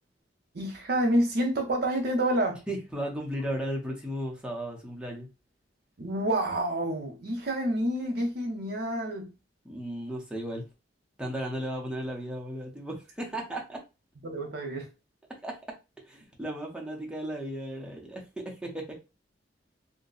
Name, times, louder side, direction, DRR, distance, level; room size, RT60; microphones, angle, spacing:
voice 1, 0.5-2.6 6.0-9.3 14.2-14.9, right 1 dB, 60° right, 0.8 m, -28 dB
voice 2, 2.7-5.3 9.6-10.6 11.2-13.8 15.4-15.6 16.0-19.0, equal, 5° right, 0.8 m, -35 dB
2.6 x 2.2 x 3.9 m
head